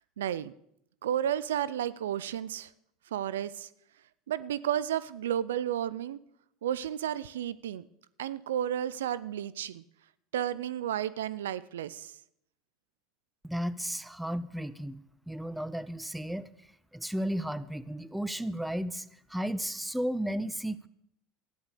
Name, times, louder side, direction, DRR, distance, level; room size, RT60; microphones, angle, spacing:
voice 1, 0.2-0.5 1.0-2.7 3.1-3.7 4.3-6.2 6.6-7.9 8.2-9.8 10.3-12.2, right 10 dB, 85° right, 18 dB, 0.5 m, -32 dB
voice 2, 13.4-15.0 15.3-16.5 16.9-19.0 19.3-20.9, equal, 5° right, 16 dB, 0.7 m, -33 dB
13.0 x 10.5 x 6.8 m, 0.73 s
hypercardioid pair, 85°, 0 cm